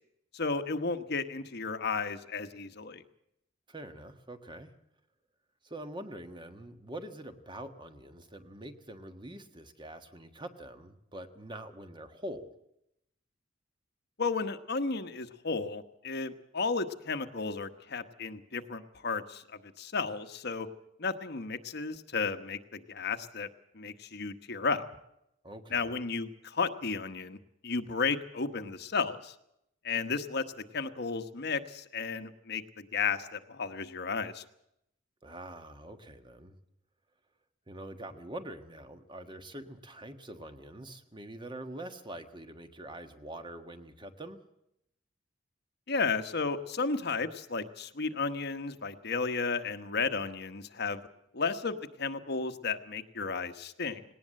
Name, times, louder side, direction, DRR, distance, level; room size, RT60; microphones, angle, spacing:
voice 1, 0.3-3.0 14.2-19.4 19.8-20.7 21.0-23.5 23.7-24.8 25.7-27.4 27.6-29.3 29.8-30.4 30.7-34.4 45.9-51.0 51.3-54.0, left 4 dB, 60° left, 9 dB, 1.2 m, -33 dB
voice 2, 3.7-4.7 5.6-12.5 25.4-25.9 35.2-36.5 37.7-44.4, right 1 dB, 25° right, 7 dB, 1.5 m, -44 dB
19.0 x 18.5 x 7.7 m, 0.79 s
head